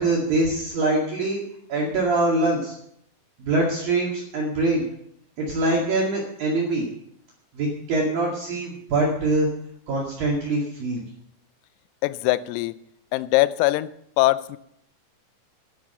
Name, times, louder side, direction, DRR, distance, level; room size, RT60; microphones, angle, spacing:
voice 1, 0.0-1.4 1.7-2.7 3.4-4.9 5.4-6.9 7.6-9.5 9.9-11.0, right 2 dB, 50° right, -3 dB, 3.4 m, -23 dB
voice 2, 12.0-12.8 13.1-13.9 14.2-14.6, left 18 dB, 90° left, 16 dB, 3.3 m, -21 dB
11.5 x 11.0 x 6.6 m, 0.74 s
omnidirectional pair, 6.0 m